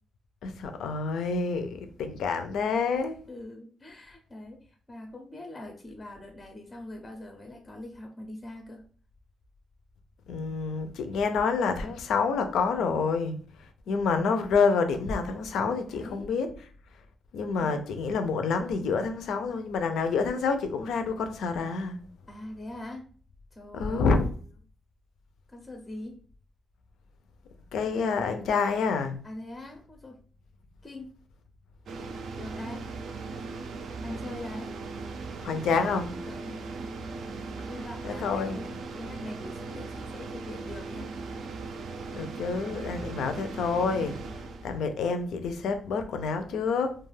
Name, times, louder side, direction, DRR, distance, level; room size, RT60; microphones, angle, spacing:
voice 1, 0.4-3.2 10.3-16.5 17.3-22.0 23.7-24.3 27.7-29.2 35.4-36.1 38.0-38.6 42.1-46.9, left 4 dB, 85° left, 0.4 m, -28 dB
voice 2, 3.3-8.8 15.7-16.3 22.3-23.1 23.5-24.3 25.5-26.2 29.2-30.2 30.8-31.1 32.4-32.9 34.0-34.7 36.3-37.0 37.7-41.2, left 1 dB, 15° left, 0.4 m, -43 dB
sound 1, 31.9-44.9, right 4 dB, 70° right, 0.4 m, -38 dB
2.4 x 2.3 x 3.2 m
cardioid pair, 145°, 0 cm